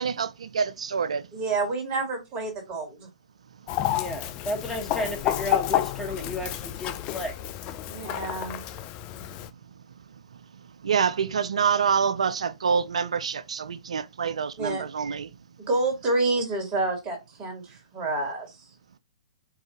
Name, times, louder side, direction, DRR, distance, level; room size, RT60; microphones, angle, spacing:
voice 1, 0.0-1.3 10.8-15.3, right 6 dB, 65° right, 0.4 m, -26 dB
voice 2, 1.3-3.1 7.9-8.7 14.6-14.8 15.6-18.6, right 2 dB, 30° right, 1.9 m, -28 dB
Chicken rooster, 3.7-9.5, left 13 dB, 30° left, 0.4 m, -30 dB
voice 3, 3.9-7.4, left 1 dB, 5° left, 1.4 m, -32 dB
4.8 x 2.7 x 3.0 m
figure-of-eight pair, 115°, 4 cm